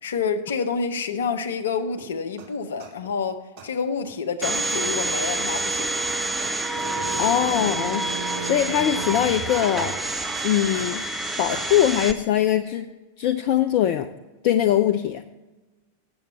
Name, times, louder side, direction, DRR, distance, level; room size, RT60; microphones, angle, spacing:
voice 1, 0.0-6.0, left 5 dB, 65° left, 0.8 m, -28 dB
sound 1, 2.0-2.1 2.4-2.5 2.8-3.1 3.6-3.7 4.1-4.2 4.4-4.5 4.8-5.1 5.6-5.7 6.0-6.1 6.4-6.5 6.8-7.1 7.5-7.6 8.0-8.5 8.8-9.1 9.5-9.6 10.0-11.1 11.5-11.6, right 6 dB, 40° right, 2.1 m, -41 dB
Domestic sounds home sounds, 4.4-12.1, right 2 dB, 10° right, 0.7 m, -28 dB
sound 2, 6.7-10.4, right 4 dB, 75° right, 1.0 m, -36 dB
voice 2, 7.2-8.0 8.4-10.0 10.4-11.0 11.4-12.9 13.2-14.1 14.4-15.2, left 11 dB, 45° left, 0.4 m, -21 dB
7.9 x 7.0 x 7.0 m
figure-of-eight pair, 90°, 0 cm